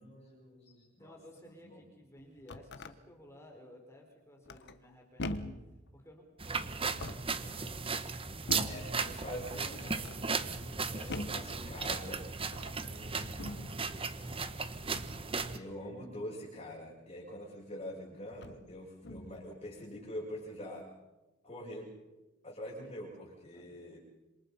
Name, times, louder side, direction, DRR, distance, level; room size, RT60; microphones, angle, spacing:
voice 1, 0.0-1.1 1.4-1.8 8.7-10.3 10.9-12.3 12.8-13.7 15.0-20.9 21.4-21.9 22.4-24.0, equal, 30° left, -5 dB, 7.1 m, -45 dB
voice 2, 1.0-5.5 5.9-8.0 8.4-8.8 9.5-9.9 10.1-12.9 13.2-14.5 15.5-15.7 23.5-23.7, left 1 dB, 15° left, 1 dB, 4.8 m, -56 dB
sound 1, 2.2-3.0 4.5-4.9 5.2-5.7 6.8-7.4 8.5-8.9 9.7-10.2 11.1-11.5 12.4-12.8 13.4-13.7 14.9-15.2 17.4-17.5 18.3-18.7 19.0-19.4, left 2 dB, 55° left, 1.3 m, -42 dB
sound 2, 6.4-15.6, right 4 dB, 25° right, 1.2 m, -36 dB
27.0 x 27.0 x 5.6 m, 1.1 s
head